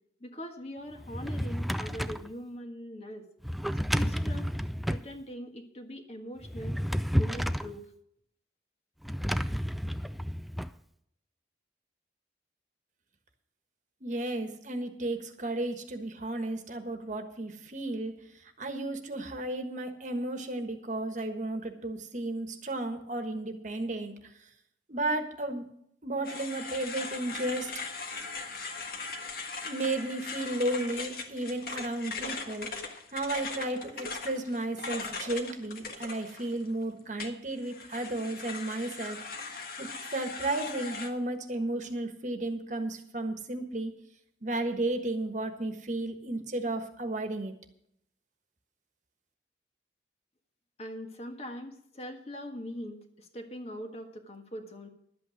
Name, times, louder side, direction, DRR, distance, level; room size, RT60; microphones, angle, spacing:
voice 1, 0.2-3.2 3.7-4.5 4.9-6.8 7.1-7.9 50.8-54.9, equal, 35° left, 5 dB, 1.5 m, -42 dB
Drawer open or close, 1.0-2.3 3.4-5.1 6.4-7.7 9.0-10.7, equal, ahead, 0.3 m, -31 dB
voice 2, 14.0-18.1 18.6-24.2 24.9-25.7 26.0-27.7 29.6-32.7 33.1-39.2 39.8-43.9 44.4-47.5, right 2 dB, 45° right, 7 dB, 1.4 m, -33 dB
sound 1, 26.2-36.7 37.2-41.1, left 4 dB, 55° left, 1.5 m, -39 dB
12.0 x 8.7 x 6.3 m, 0.73 s
head